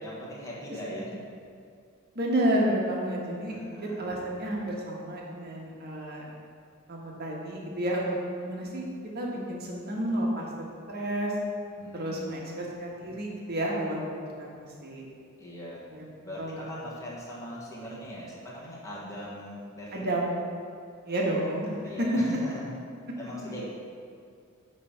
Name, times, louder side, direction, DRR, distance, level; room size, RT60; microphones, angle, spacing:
voice 1, 0.0-1.2 3.5-4.0 11.8-12.5 15.4-15.8 16.2-20.2 21.8-22.7 23.2-23.6, equal, 15° left, -6 dB, 1.4 m, -40 dB
voice 2, 2.1-6.3 6.9-8.1 8.4-8.8 9.1-10.4 10.9-11.3 11.9-15.1 15.9-16.0 16.4-16.8 19.9-20.3 21.1-21.9, right 1 dB, 50° right, -3 dB, 1.4 m, -31 dB
9.4 x 3.4 x 5.6 m, 2.3 s
head